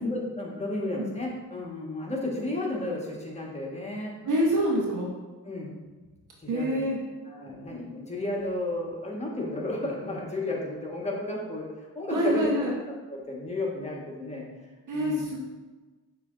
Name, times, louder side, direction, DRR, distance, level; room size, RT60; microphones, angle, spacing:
voice 1, 0.0-4.1 5.4-5.8 6.4-6.8 7.3-11.7 11.9-12.5 13.1-14.4 14.9-15.2, left 2 dB, 15° left, -2 dB, 1.4 m, -33 dB
voice 2, 4.2-5.1 6.5-7.0 12.1-12.7 14.9-15.4, equal, 50° right, -2 dB, 1.2 m, -26 dB
6.6 x 3.0 x 2.6 m, 1.3 s
hypercardioid pair, 45°, 38 cm